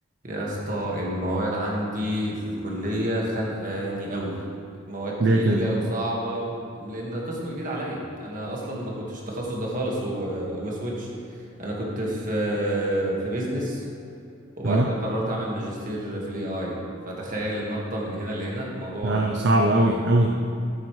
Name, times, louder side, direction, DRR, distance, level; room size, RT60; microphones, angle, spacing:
voice 1, 0.2-4.4 4.7-13.8 14.6-19.3, right 1 dB, 40° right, -3 dB, 1.8 m, -29 dB
voice 2, 5.2-5.6 14.6-14.9 19.0-20.4, right 1 dB, 60° right, 0 dB, 0.6 m, -20 dB
13.0 x 8.4 x 3.3 m, 2.5 s
head